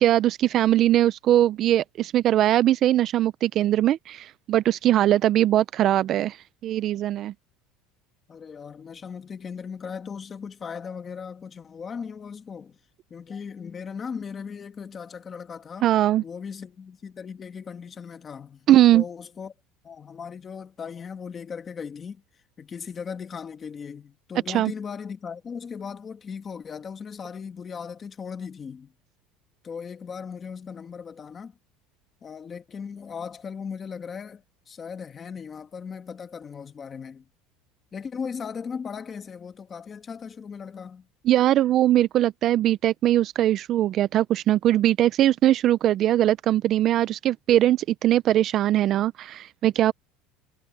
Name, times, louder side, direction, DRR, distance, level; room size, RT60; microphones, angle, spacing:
voice 1, 0.0-7.3 15.8-16.2 18.7-19.0 24.5-24.7 41.3-49.9, right 13 dB, 35° right, 0.3 m, -21 dB
voice 2, 8.3-12.8 13.1-15.9 16.2-19.5 19.8-22.2 22.6-28.9 29.6-31.5 32.2-37.3 37.9-41.0, left 6 dB, 20° left, 1.5 m, -37 dB
cardioid pair, 160°, 0 cm